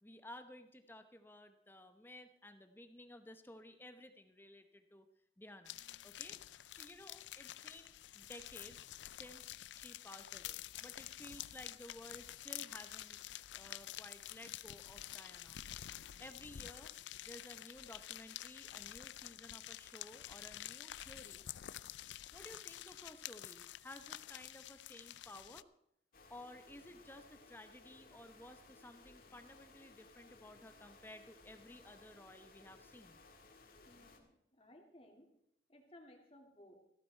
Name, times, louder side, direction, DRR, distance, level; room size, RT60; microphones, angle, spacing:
voice 1, 0.0-5.1 5.4-5.8 6.0-6.4 6.7-13.2 13.5-15.6 16.2-16.9 17.2-21.5 22.3-25.7 26.3-33.2, left 1 dB, 10° left, 9 dB, 0.8 m, -55 dB
sound 1, 5.7-25.6, left 13 dB, 85° left, 0.4 m, -49 dB
sound 2, 26.1-34.2, left 3 dB, 50° left, 1.9 m, -61 dB
voice 2, 33.8-35.3 35.7-36.7, left 1 dB, 30° left, 1 dB, 2.8 m, -60 dB
15.0 x 13.5 x 4.4 m, 0.76 s
head